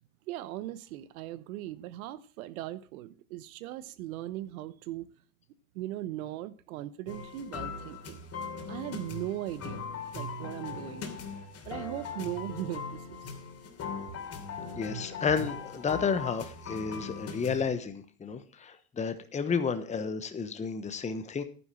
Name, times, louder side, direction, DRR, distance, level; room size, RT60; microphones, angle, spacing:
voice 1, 0.3-5.1 5.7-8.2 8.7-9.9 10.1-13.2, right 14 dB, 75° right, 1.0 m, -39 dB
sound 1, 7.1-17.7, left 4 dB, 35° left, 2.9 m, -40 dB
voice 2, 14.8-21.4, left 5 dB, 15° left, 1.1 m, -31 dB
11.0 x 10.0 x 4.3 m
supercardioid pair, 105°, 43 cm